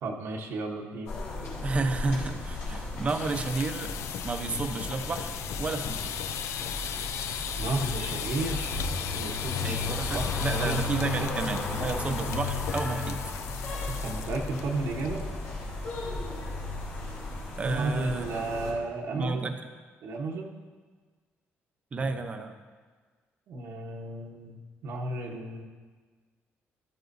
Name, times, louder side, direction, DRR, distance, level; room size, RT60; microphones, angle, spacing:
voice 1, 0.0-1.1 6.7-6.8 7.6-8.7 9.1-11.3 14.0-15.3 17.6-19.5 20.0-20.5 22.0-22.1 23.5-25.6, right 2 dB, 70° right, -1 dB, 1.1 m, -33 dB
sound 1, 1.1-18.7, left 2 dB, 65° left, 3.9 m, -35 dB
voice 2, 1.6-3.9 4.2-6.3 9.6-13.2 17.6-18.3 19.1-19.5 21.9-22.5, right 3 dB, 25° right, 6 dB, 0.8 m, -32 dB
sound 2, 3.0-14.6 14.9-15.2 15.5-15.6 16.0-16.4, left 9 dB, 80° left, 0.5 m, -37 dB
13.5 x 12.5 x 2.7 m, 1.5 s
cardioid pair, 150°, 5 cm